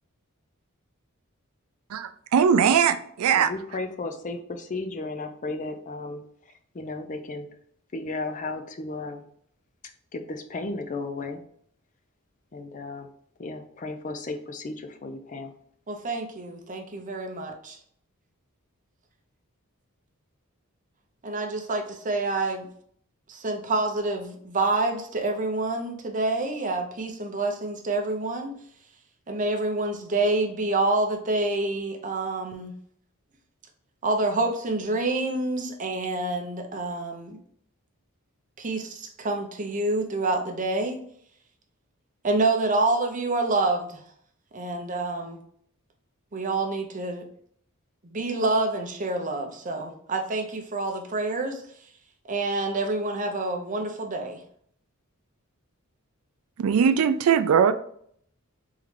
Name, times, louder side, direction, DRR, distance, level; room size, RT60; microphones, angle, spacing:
voice 1, 1.9-3.5 56.6-57.7, right 7 dB, 80° right, 11 dB, 0.4 m, -20 dB
voice 2, 3.4-6.2 6.7-7.5 7.9-9.2 10.1-11.4 12.5-13.1 13.4-15.5, left 3 dB, 35° left, 6 dB, 0.5 m, -34 dB
voice 3, 15.9-17.8 21.2-22.7 23.3-28.5 29.3-32.7 34.0-37.4 38.6-41.0 42.2-44.0 44.5-45.4 46.3-47.3 48.0-51.6 52.3-54.4, right 2 dB, 35° right, 3 dB, 0.7 m, -27 dB
3.7 x 3.2 x 3.2 m, 0.63 s
head